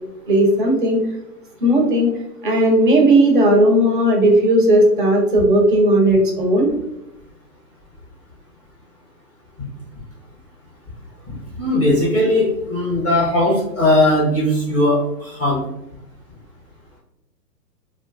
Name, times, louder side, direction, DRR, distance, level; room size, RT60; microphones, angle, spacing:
voice 1, 0.3-1.0 1.6-2.1 2.4-6.7, right 1 dB, 35° right, 1 dB, 0.4 m, -15 dB
voice 2, 11.6-15.6, left 1 dB, 20° left, -8 dB, 0.6 m, -18 dB
2.6 x 2.2 x 2.3 m, 0.87 s
hypercardioid pair, 140°, 49 cm